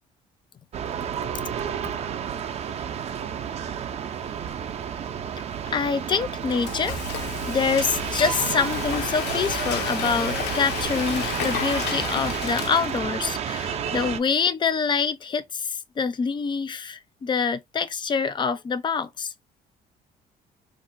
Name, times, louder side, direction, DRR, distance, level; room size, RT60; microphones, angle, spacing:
sound 1, 0.7-14.2, right 8 dB, 40° right, 0.4 m, -31 dB
voice 1, 5.7-19.3, left 5 dB, 25° left, 0.4 m, -26 dB
Frying (food), 6.2-13.2, left 9 dB, 85° left, 0.5 m, -32 dB
2.5 x 2.1 x 3.9 m
cardioid pair, 110°, 17 cm